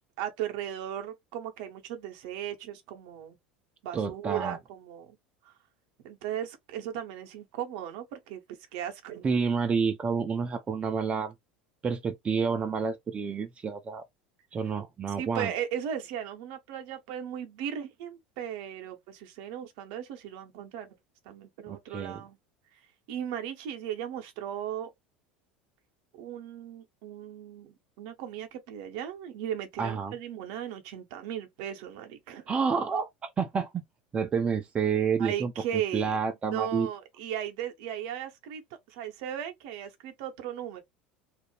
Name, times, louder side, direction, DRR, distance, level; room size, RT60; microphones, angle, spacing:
voice 1, 0.2-3.4 3.8-5.2 5.4-5.5 6.0-9.3 15.2-21.0 21.2-22.4 22.7-22.8 23.1-24.9 26.1-32.4 35.2-36.2 36.5-38.6 38.9-40.8, right 10 dB, 55° right, 0.7 m, -37 dB
voice 2, 3.9-4.6 9.2-11.3 11.8-14.0 14.5-15.5 21.7-22.2 29.8-30.1 32.5-33.8 34.1-36.9, right 5 dB, 25° right, 0.4 m, -29 dB
2.4 x 2.0 x 3.2 m
figure-of-eight pair, 75°, 5 cm